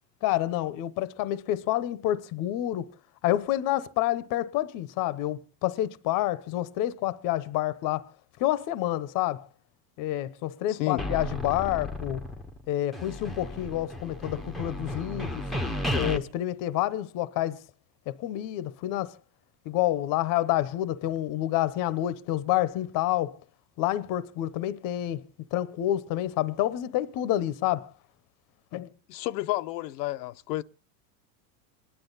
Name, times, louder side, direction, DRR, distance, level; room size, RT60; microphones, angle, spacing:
voice 1, 0.2-2.9 3.2-8.1 8.4-9.5 10.0-12.2 12.7-15.4 15.9-17.6 18.1-19.1 19.7-23.4 23.8-25.2 25.5-27.9 28.7-28.9, left 14 dB, 40° left, 0.8 m, -28 dB
voice 2, 10.7-11.0 29.1-30.6, left 16 dB, 90° left, 0.7 m, -31 dB
sound 1, 11.0-12.7 12.9-16.2, left 1 dB, ahead, 0.8 m, -33 dB
26.5 x 10.0 x 4.0 m
supercardioid pair, 145°, 49 cm